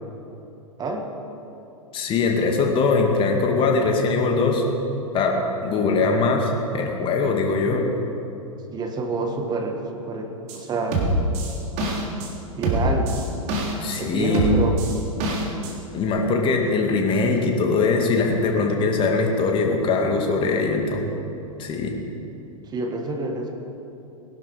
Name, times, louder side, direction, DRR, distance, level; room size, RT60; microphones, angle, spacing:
voice 1, 1.9-4.6 5.1-7.8 13.8-14.6 15.9-21.1 21.6-21.9, left 3 dB, 30° left, 1 dB, 2.4 m, -21 dB
voice 2, 8.7-11.0 12.6-13.2 14.0-14.8 22.7-23.5, right 3 dB, 25° right, 3 dB, 1.7 m, -28 dB
sound 1, 10.5-10.6 10.9-12.3 12.6-14.0 14.3-15.7 16.0-16.1, right 1 dB, 40° right, 3.4 m, -24 dB
21.0 x 12.0 x 5.1 m, 2.9 s
figure-of-eight pair, 100°, 18 cm